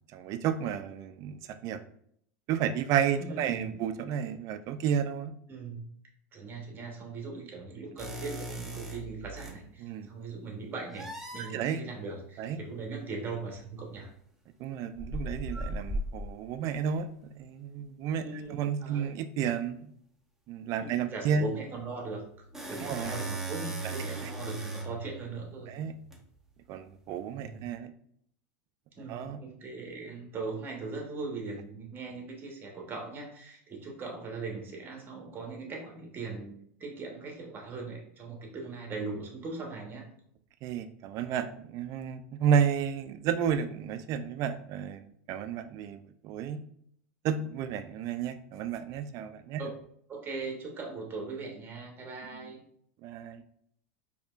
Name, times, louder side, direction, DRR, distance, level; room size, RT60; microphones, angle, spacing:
voice 1, 0.1-1.8 2.5-5.3 9.8-10.1 11.4-11.8 12.4-12.6 14.6-17.1 17.4-18.2 18.5-19.9 20.5-21.4 22.8-23.1 24.2-24.3 25.7-25.9 26.7-27.9 29.1-29.4 40.6-46.6 47.2-49.6 53.0-53.4, right 8 dB, 45° right, 10 dB, 0.4 m, -31 dB
voice 2, 3.2-3.8 5.5-5.8 6.3-11.1 11.3-14.1 18.2-19.2 20.8-22.2 22.6-25.7 27.3-27.6 28.9-36.5 36.8-40.1 49.6-49.8 50.1-52.6, right 4 dB, 25° right, 1 dB, 1.1 m, -39 dB
sound 1, 8.0-9.6 10.9-11.5 13.5-13.7 15.0-16.5 22.0-26.2, right 2 dB, 5° right, 0.8 m, -38 dB
4.3 x 2.9 x 2.4 m, 0.67 s
supercardioid pair, 125°, 8 cm